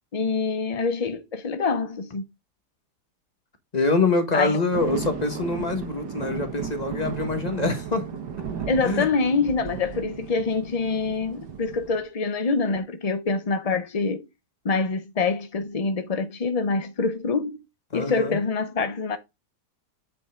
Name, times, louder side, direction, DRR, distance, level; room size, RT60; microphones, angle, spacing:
voice 1, 0.1-2.2 4.3-4.6 8.7-14.3 14.6-17.6 17.9-19.2, left 4 dB, 60° left, 0.4 m, -25 dB
voice 2, 3.7-8.2 8.8-9.1 17.9-18.4, left 3 dB, 25° left, 1.5 m, -25 dB
sound 1, 4.7-12.0, right 7 dB, 80° right, 1.9 m, -35 dB
8.4 x 5.3 x 3.7 m
omnidirectional pair, 1.8 m